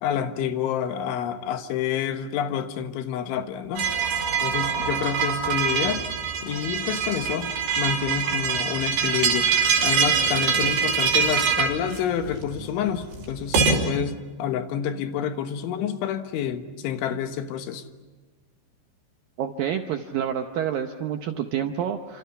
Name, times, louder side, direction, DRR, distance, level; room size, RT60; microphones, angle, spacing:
voice 1, 0.0-3.9 4.4-6.0 6.4-7.5 7.8-9.5 9.8-17.8, left 8 dB, 85° left, 8 dB, 3.8 m, -28 dB
sound 1, 3.8-13.8, right 6 dB, 60° right, 6.8 m, -24 dB
voice 2, 19.4-22.2, right 9 dB, 80° right, 6 dB, 2.1 m, -28 dB
30.0 x 27.0 x 5.9 m, 1.3 s
omnidirectional pair, 5.3 m